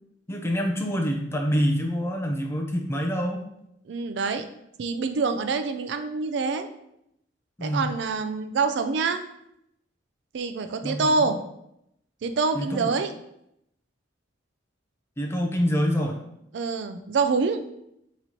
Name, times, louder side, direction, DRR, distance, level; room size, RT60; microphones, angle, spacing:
voice 1, 0.3-3.4 7.6-7.8 10.8-11.2 12.6-12.9 15.2-16.2, equal, 15° left, 2 dB, 0.5 m, -26 dB
voice 2, 3.9-4.5 4.8-6.7 7.6-9.2 10.3-11.4 12.2-13.1 16.5-17.6, right 4 dB, 60° right, 8 dB, 0.3 m, -26 dB
4.0 x 3.0 x 4.2 m, 0.78 s
head